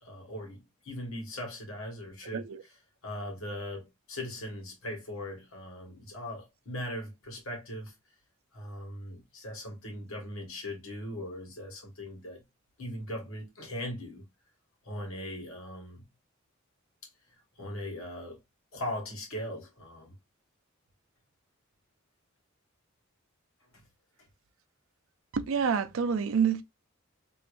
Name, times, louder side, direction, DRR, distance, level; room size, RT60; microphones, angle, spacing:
voice 1, 0.0-2.4 3.0-7.9 8.5-12.4 12.8-14.2 14.8-16.1 17.6-18.4 18.7-20.1 23.7-23.8, left 1 dB, 80° left, 1.6 m, -39 dB
voice 2, 2.2-2.6 25.3-26.6, right 6 dB, 70° right, 0.4 m, -28 dB
3.1 x 3.1 x 2.5 m
head